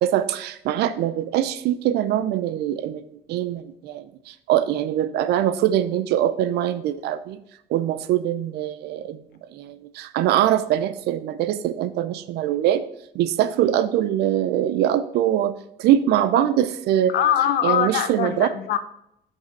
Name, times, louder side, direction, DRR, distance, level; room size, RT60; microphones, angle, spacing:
voice 1, 0.0-7.4 7.7-9.2 9.5-12.8 13.1-15.5 15.8-17.1 17.6-18.5, right 11 dB, 75° right, 13 dB, 0.5 m, -23 dB
voice 2, 17.1-18.8, left 9 dB, 70° left, 10 dB, 0.6 m, -22 dB
5.3 x 3.3 x 5.2 m, 0.77 s
cardioid pair, 110°, 17 cm